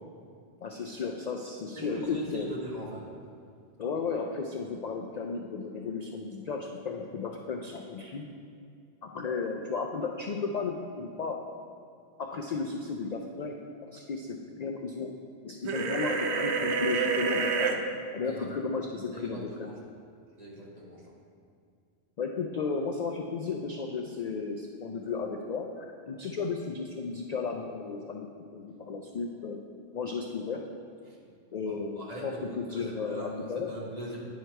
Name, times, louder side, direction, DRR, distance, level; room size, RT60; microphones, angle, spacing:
voice 1, 0.6-2.5 3.8-8.3 9.0-11.4 12.2-13.6 13.9-15.1 15.4-17.9 18.1-19.7 22.2-28.3 28.5-29.6 29.9-30.6 31.5-33.7, left 4 dB, 55° left, 2 dB, 0.5 m, -34 dB
voice 2, 1.8-3.0 18.3-18.4 19.1-19.7 20.4-21.0 31.6-32.4 32.7-33.4 33.7-34.2, right 1 dB, 40° right, -5 dB, 1.5 m, -40 dB
sound 1, 15.7-17.8, right 5 dB, 85° right, 0.9 m, -28 dB
9.8 x 4.6 x 4.5 m, 2.3 s
omnidirectional pair, 1.1 m